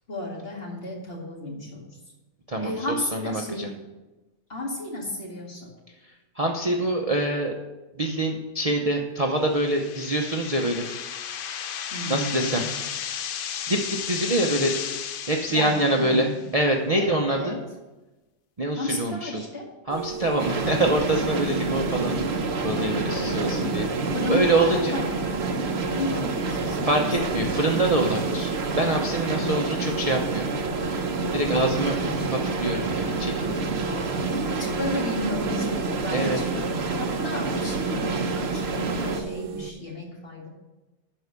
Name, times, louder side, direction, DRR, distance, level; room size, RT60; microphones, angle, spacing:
voice 1, 0.1-1.9 2.6-3.7 4.5-5.7 11.9-12.6 15.5-16.4 17.0-17.6 18.8-19.7 22.8-23.4 24.1-25.0 25.9-27.3 29.3-30.0 31.4-32.3 33.8-34.2 34.4-36.7 37.0-40.5, left 1 dB, 45° left, -1 dB, 2.3 m, -33 dB
voice 2, 2.5-3.7 6.0-7.6 8.0-11.1 12.1-12.6 13.7-14.8 15.2-17.6 18.6-19.4 19.9-25.0 26.8-30.9 31.3-33.7 36.1-36.4, right 1 dB, 30° right, 1 dB, 0.7 m, -25 dB
sound 1, 9.5-16.4, left 8 dB, 75° left, 0.5 m, -34 dB
sound 2, 19.9-39.7, right 7 dB, 90° right, 1.1 m, -36 dB
sound 3, 20.4-39.2, right 3 dB, 50° right, 1.0 m, -28 dB
12.0 x 4.8 x 6.7 m, 1.1 s
omnidirectional pair, 1.5 m